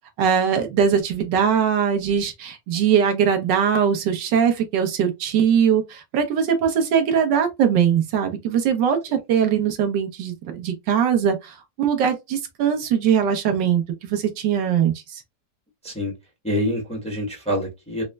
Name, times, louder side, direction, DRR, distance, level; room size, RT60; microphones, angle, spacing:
voice 1, 0.2-15.2, right 8 dB, 80° right, 1.4 m, -21 dB
voice 2, 16.4-18.0, equal, 5° left, 0.8 m, -26 dB
4.2 x 2.0 x 2.2 m
omnidirectional pair, 1.9 m